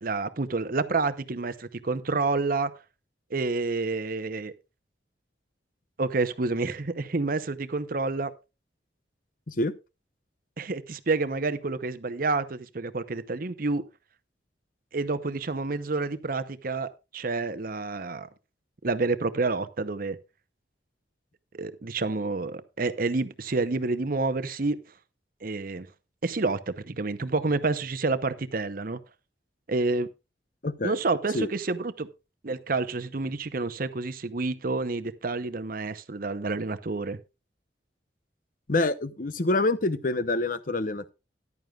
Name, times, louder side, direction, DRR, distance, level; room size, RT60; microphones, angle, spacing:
voice 1, 0.0-2.7 3.3-4.5 6.0-8.3 10.6-13.8 14.9-18.3 18.8-20.2 21.5-24.8 25.4-25.9 26.2-29.0 29.7-30.1 30.8-32.1 32.4-37.2, right 3 dB, 50° right, 0.8 m, -29 dB
voice 2, 30.6-31.0 31.3-31.5 38.7-41.1, left 2 dB, 50° left, 0.8 m, -26 dB
14.5 x 11.0 x 2.4 m
head